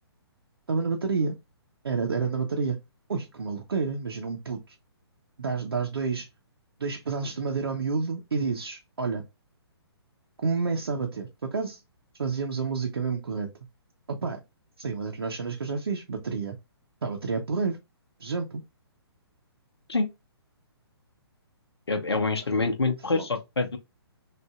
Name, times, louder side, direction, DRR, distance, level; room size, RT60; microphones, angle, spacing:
voice 1, 0.7-1.4 1.8-2.8 3.1-4.7 5.4-6.3 6.8-9.2 10.4-11.8 12.2-13.5 14.1-14.4 14.8-16.6 17.0-17.8 18.2-18.6 22.5-22.6 23.1-23.3, right 4 dB, 60° right, 0.8 m, -29 dB
voice 2, 21.9-23.8, left 3 dB, 70° left, 0.8 m, -26 dB
6.1 x 2.6 x 2.3 m
figure-of-eight pair, 130°, 14 cm